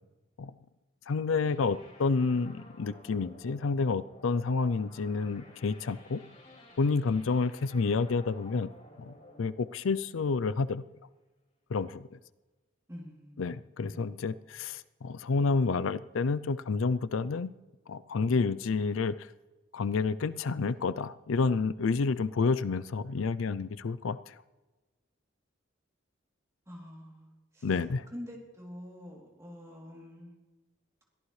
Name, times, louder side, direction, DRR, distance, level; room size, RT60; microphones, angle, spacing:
voice 1, 1.1-6.2 6.8-8.7 9.0-10.8 11.7-12.1 13.4-17.5 17.9-19.1 19.7-24.3 27.6-28.1, left 4 dB, 85° left, 16 dB, 0.5 m, -29 dB
sound 1, 1.4-10.8, left 1 dB, 40° left, 4.8 m, -54 dB
voice 2, 12.9-14.4 26.7-27.7 28.1-30.3, equal, 15° right, -2 dB, 3.1 m, -47 dB
22.5 x 14.5 x 3.3 m, 1.2 s
head